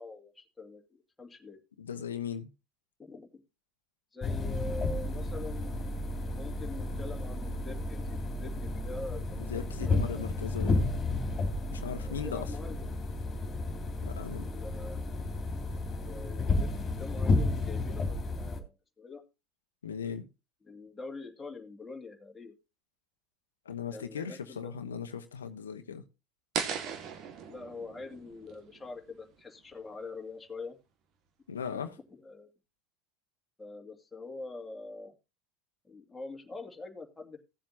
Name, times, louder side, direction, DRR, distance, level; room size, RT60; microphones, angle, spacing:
voice 1, 0.0-1.6 3.0-3.4 4.1-5.9 6.3-10.4 12.0-12.9 14.1-15.0 16.0-19.2 20.6-22.5 23.9-24.7 27.5-30.8 31.7-31.8 32.2-32.5 33.6-35.1 35.8-37.4, left 3 dB, 15° left, 2.4 m, -44 dB
voice 2, 1.8-2.5 9.4-10.9 11.7-12.6 14.0-14.5 19.8-20.3 23.6-26.0 31.5-31.9, left 7 dB, 85° left, 1.0 m, -38 dB
sound 1, 4.2-18.6, left 2 dB, 30° left, 2.8 m, -32 dB
sound 2, 26.5-29.6, right 7 dB, 50° right, 1.7 m, -38 dB
16.5 x 7.5 x 2.7 m
hypercardioid pair, 80°, 0 cm